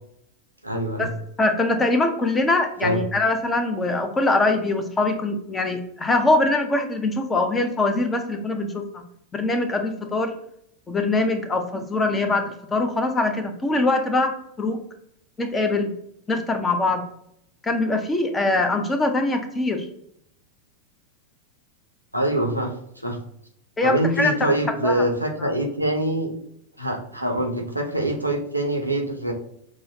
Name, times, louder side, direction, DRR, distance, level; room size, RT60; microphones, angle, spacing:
voice 1, 0.6-1.1 2.8-3.0 22.1-23.2 23.8-26.3 26.8-29.3, right 1 dB, 90° right, 3 dB, 0.7 m, -24 dB
voice 2, 1.4-9.0 9.3-10.3 10.9-14.8 15.4-15.9 16.3-17.0 17.6-19.9 23.8-24.5 24.8-25.0 25.4-25.5, left 2 dB, 15° left, 6 dB, 0.6 m, -23 dB
6.2 x 2.1 x 2.8 m, 0.73 s
figure-of-eight pair, 90°, 0 cm